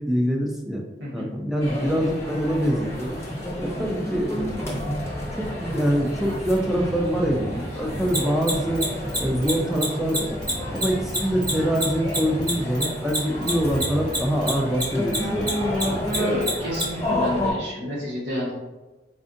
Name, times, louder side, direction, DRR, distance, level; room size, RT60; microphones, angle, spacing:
voice 1, 0.0-0.8 1.1-3.2 3.6-4.9 5.3-8.8 9.2-10.4 10.7-16.1, equal, ahead, 0 dB, 0.4 m, -25 dB
sound 1, 1.6-17.5, left 1 dB, 15° left, 0.8 m, -30 dB
Mechanisms, 8.1-14.8 15.1-16.8, right 1 dB, 20° right, 0.9 m, -26 dB
voice 2, 16.1-18.5, equal, 75° right, -5 dB, 1.3 m, -29 dB
4.2 x 2.5 x 2.6 m, 1.2 s
head